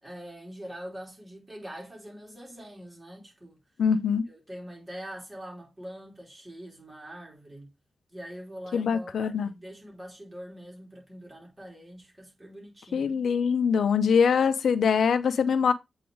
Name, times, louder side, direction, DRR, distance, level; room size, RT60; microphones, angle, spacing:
voice 1, 0.0-3.6 4.2-7.7 8.1-13.2, equal, 15° right, 3.3 m, -43 dB
voice 2, 3.8-4.2 8.7-9.5 12.9-15.7, left 6 dB, 85° left, 0.5 m, -23 dB
7.7 x 3.2 x 3.8 m
wide cardioid pair, 95°, 0 cm